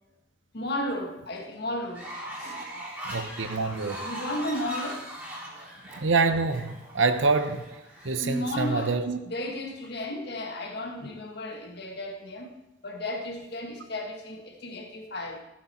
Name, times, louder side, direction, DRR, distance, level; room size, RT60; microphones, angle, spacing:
voice 1, 0.5-2.1 2.4-2.7 4.0-5.0 8.2-8.9 9.2-12.5 12.8-15.4, left 1 dB, 55° left, 3 dB, 1.6 m, -34 dB
Fowl, 1.9-8.9, right 1 dB, 10° right, 4.0 m, -40 dB
voice 2, 3.0-4.0 6.0-7.6 8.0-9.2, right 4 dB, 80° right, 9 dB, 0.9 m, -26 dB
14.5 x 8.8 x 4.5 m, 0.95 s
head